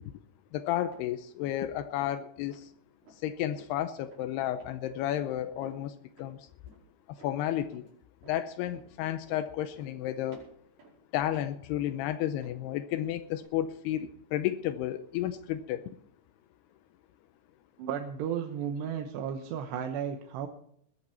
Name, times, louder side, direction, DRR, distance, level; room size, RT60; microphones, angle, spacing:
voice 1, 0.5-2.6 3.2-5.9 6.2-6.4 7.2-7.8 8.3-10.4 11.1-15.8, left 12 dB, 80° left, 10 dB, 2.7 m, -32 dB
sound 1, 0.9-1.1 1.4-1.7 2.0-2.2 2.5-2.7 3.0-3.2 3.6-3.8 4.1-4.3 4.6-5.3 5.6-5.8 6.1-6.3 6.7-6.9 7.2-7.4 7.7-7.9 8.2-8.4 8.7-8.9 9.3-9.5 9.8-10.0 10.3-11.0 11.3-12.0 12.4-13.1 13.4-13.5, right 2 dB, 55° right, 6.6 m, -56 dB
voice 2, 17.8-20.5, right 8 dB, 90° right, 5 dB, 3.2 m, -34 dB
20.5 x 11.0 x 4.4 m, 0.68 s
omnidirectional pair, 4.7 m